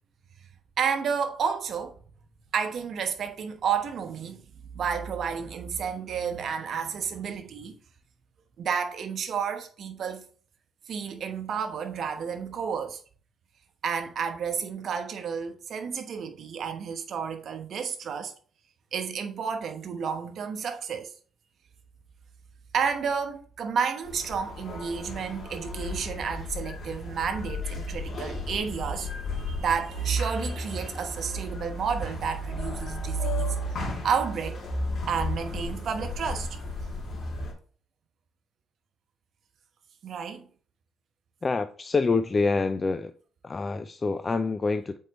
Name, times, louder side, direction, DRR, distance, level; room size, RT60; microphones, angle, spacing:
voice 1, 0.8-2.0 2.5-4.5 4.7-7.8 8.6-10.3 10.9-13.0 13.8-18.3 18.9-21.1 22.7-33.6 34.0-34.6 35.1-36.5 40.0-40.5, right 6 dB, 60° right, 1.1 m, -31 dB
sound 1, 24.0-37.5, equal, 55° left, 2.5 m, -33 dB
voice 2, 41.4-43.1 43.4-45.0, left 4 dB, 30° left, 0.4 m, -26 dB
7.8 x 4.7 x 3.1 m
cardioid pair, 90°, 0 cm